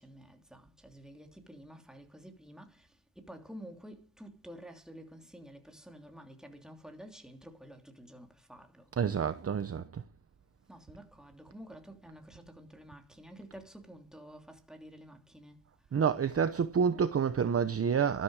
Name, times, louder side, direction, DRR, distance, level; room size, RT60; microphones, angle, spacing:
voice 1, 0.0-2.9 3.1-8.9 10.7-15.6, equal, ahead, 3.0 m, -50 dB
voice 2, 9.0-10.0 15.9-18.2, right 7 dB, 30° right, 0.9 m, -28 dB
13.0 x 13.0 x 4.9 m
cardioid pair, 140°, 45 cm